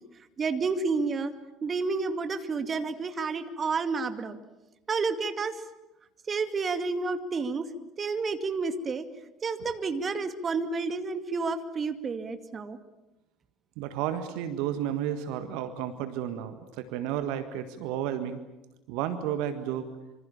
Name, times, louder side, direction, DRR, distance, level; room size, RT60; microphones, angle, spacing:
voice 1, 0.4-1.3 1.6-4.4 4.9-5.6 6.3-7.7 8.0-9.1 9.4-12.8, right 4 dB, 30° right, 8 dB, 2.2 m, -30 dB
voice 2, 13.8-18.4 18.9-19.9, right 10 dB, 60° right, 9 dB, 1.6 m, -32 dB
26.0 x 25.5 x 7.3 m, 0.98 s
figure-of-eight pair, 60°, 0 cm